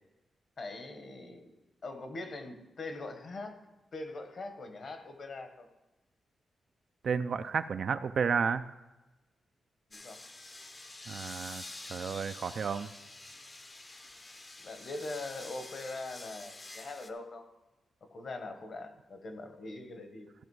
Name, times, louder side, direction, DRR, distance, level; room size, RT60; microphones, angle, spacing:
voice 1, 0.6-1.5 1.8-5.7 9.9-10.2 14.6-17.5 18.1-20.3, left 2 dB, 40° left, 7 dB, 1.0 m, -42 dB
voice 2, 7.0-8.7 11.1-11.6 11.9-12.9, right 6 dB, 50° right, 10 dB, 0.3 m, -31 dB
sound 1, 9.9-17.1, left 2 dB, 20° left, 0.6 m, -47 dB
15.0 x 5.1 x 4.7 m, 1.1 s
wide cardioid pair, 180°, 0 cm